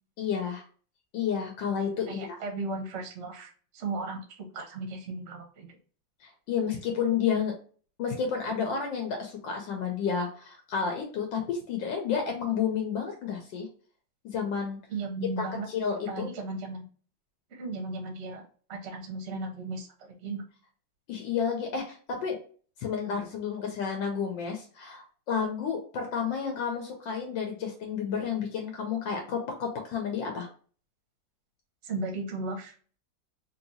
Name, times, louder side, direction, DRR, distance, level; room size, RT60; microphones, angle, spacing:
voice 1, 0.2-0.6 1.1-2.4 6.2-7.5 8.0-13.7 14.2-14.8 15.4-16.3 21.1-22.4 22.8-30.5, left 6 dB, 75° left, 2 dB, 1.4 m, -31 dB
voice 2, 2.1-5.8 14.9-15.7 16.1-16.8 17.5-18.4 18.7-20.4 31.8-32.7, right 3 dB, 55° right, 3 dB, 0.8 m, -36 dB
3.3 x 2.8 x 2.7 m, 0.43 s
omnidirectional pair, 2.1 m